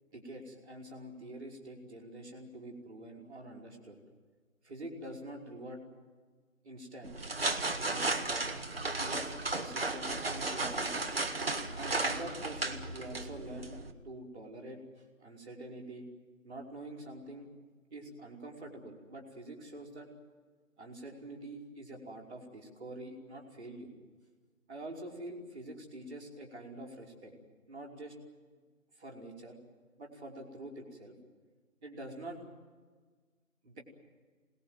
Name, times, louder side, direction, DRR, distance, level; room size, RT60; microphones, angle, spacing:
voice 1, 0.1-4.0 4.6-5.8 6.6-7.1 7.8-11.1 11.7-13.7 14.0-16.1 16.4-17.5 17.9-20.1 20.8-23.9 24.7-27.3 27.7-28.1 28.9-29.5 30.0-31.1 31.8-32.4 33.6-33.8, right 1 dB, 5° right, -14 dB, 1.6 m, -46 dB
sound 1, 7.0-13.9, right 2 dB, 45° right, 1.8 m, -34 dB
28.0 x 20.0 x 7.8 m, 1.4 s
figure-of-eight pair, 170°, 42 cm